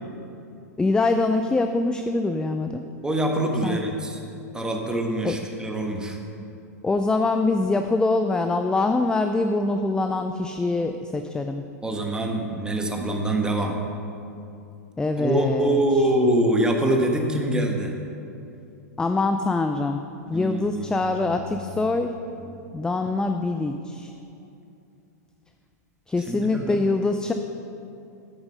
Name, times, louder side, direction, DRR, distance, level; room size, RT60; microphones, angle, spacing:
voice 1, 0.8-2.8 3.6-3.8 5.2-5.4 6.8-11.6 15.0-15.8 19.0-20.0 20.3-22.1 22.7-24.1 26.1-27.3, left 3 dB, 10° left, 7 dB, 0.4 m, -24 dB
voice 2, 3.0-4.2 4.5-6.2 11.8-13.7 15.2-17.9 20.3-20.9 21.2-22.0 22.4-22.5 26.3-26.8, right 1 dB, 10° right, 2 dB, 1.3 m, -24 dB
10.0 x 8.8 x 5.5 m, 2.7 s
hypercardioid pair, 105°, 9 cm